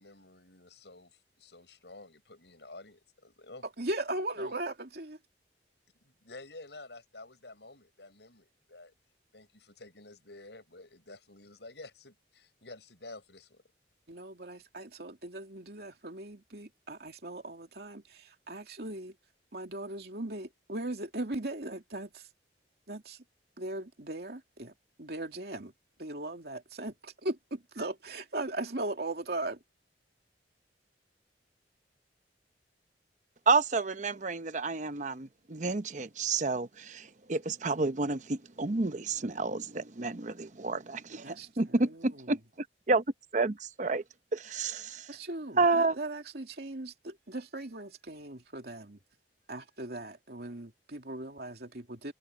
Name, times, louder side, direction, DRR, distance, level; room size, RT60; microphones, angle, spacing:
voice 1, 0.0-3.7 4.4-4.5 6.0-8.9 9.3-13.6, left 2 dB, 75° left, 7.5 m, -50 dB
voice 2, 3.8-5.2 14.1-19.1 19.5-22.3 22.9-23.2 23.6-24.7 25.0-25.7 26.0-29.6 41.2-42.3 45.1-49.0 49.5-52.1, right 2 dB, 65° right, 2.8 m, -39 dB
voice 3, 33.5-42.4 42.9-43.0 43.3-44.0 44.3-45.1 45.6-46.0, right 3 dB, 45° right, 0.8 m, -30 dB
head